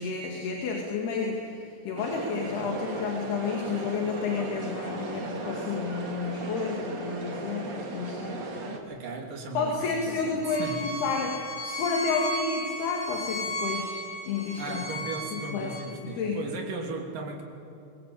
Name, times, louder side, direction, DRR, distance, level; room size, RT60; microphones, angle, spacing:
voice 1, 0.0-8.8 9.5-14.0 14.3-14.9 15.3-15.7 16.0-16.4, left 5 dB, 75° left, 1 dB, 4.2 m, -31 dB
sound 1, 2.0-8.8, right 3 dB, 35° right, 2.3 m, -36 dB
voice 2, 8.8-10.9 14.6-17.4, right 3 dB, 55° right, 1 dB, 4.5 m, -36 dB
Bowed string instrument, 10.4-15.8, equal, 45° left, 5.6 m, -35 dB
24.5 x 22.5 x 8.7 m, 2.8 s
omnidirectional pair, 4.7 m